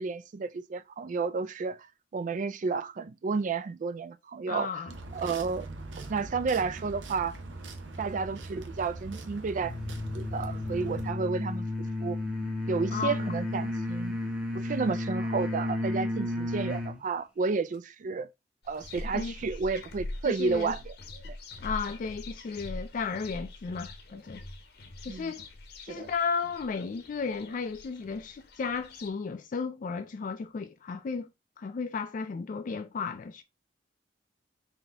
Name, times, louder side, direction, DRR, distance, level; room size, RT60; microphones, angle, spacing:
voice 1, 0.0-1.9 2.1-4.8 5.1-5.7 6.0-7.3 8.0-9.7 10.1-11.7 12.0-12.2 12.7-14.2 14.5-18.3 18.7-20.9 21.2-21.4 25.1-25.3 25.9-26.1, right 4 dB, 45° right, 0.3 m, -31 dB
voice 2, 4.5-4.9 12.9-13.3 13.6-13.7 19.1-19.3 20.2-20.7 21.6-24.4 25.0-25.4 25.8-31.3 31.6-33.4, left 5 dB, 45° left, 0.3 m, -34 dB
sound 1, 4.9-11.1, right 2 dB, 85° right, 0.7 m, -42 dB
sound 2, 9.6-17.0, left 1 dB, 5° right, 0.8 m, -33 dB
sound 3, 18.6-29.1, left 2 dB, 60° left, 0.8 m, -43 dB
4.0 x 2.8 x 3.4 m
head